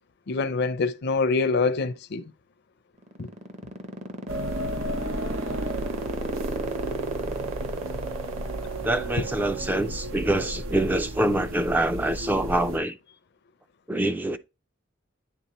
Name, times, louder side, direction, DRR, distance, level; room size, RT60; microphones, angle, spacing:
voice 1, 0.3-2.3 3.2-3.3, left 4 dB, 55° left, 0.5 m, -25 dB
sound 1, 3.0-9.6, right 2 dB, 35° right, 0.7 m, -32 dB
sound 2, 4.3-12.8, right 1 dB, 85° right, 0.7 m, -33 dB
voice 2, 8.8-13.0 13.9-14.4, right 1 dB, 10° right, 0.3 m, -25 dB
9.1 x 3.6 x 2.9 m
head